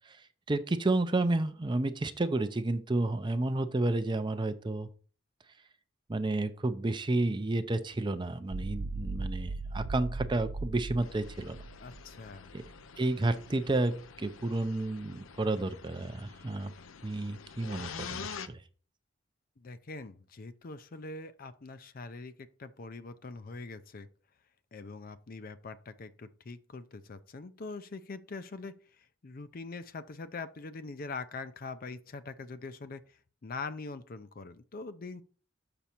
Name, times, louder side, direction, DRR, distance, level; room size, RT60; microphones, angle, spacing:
voice 1, 0.5-4.9 6.1-11.6 12.5-12.6 13.0-16.7 17.0-18.6, right 2 dB, 25° right, 0.5 m, -31 dB
sound 1, 8.5-12.7, right 3 dB, 80° right, 0.5 m, -38 dB
sound 2, 11.0-18.5, left 6 dB, 90° left, 0.6 m, -47 dB
voice 2, 11.8-12.5 19.6-24.1 24.7-35.2, left 3 dB, 45° left, 0.5 m, -43 dB
6.9 x 6.1 x 4.4 m
head